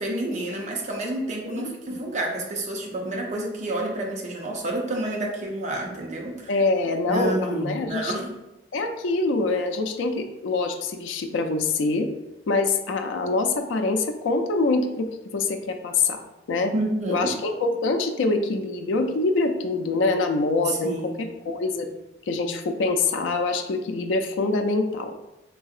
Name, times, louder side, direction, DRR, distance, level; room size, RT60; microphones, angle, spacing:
voice 1, 0.0-6.5 7.0-8.3 16.7-17.4 20.6-21.2, right 1 dB, 40° right, 0 dB, 0.5 m, -29 dB
voice 2, 6.5-8.1 8.7-12.1 12.5-16.2 16.5-16.7 17.1-21.9 22.3-25.2, left 3 dB, 80° left, 5 dB, 0.4 m, -25 dB
3.9 x 2.7 x 2.4 m, 0.99 s
head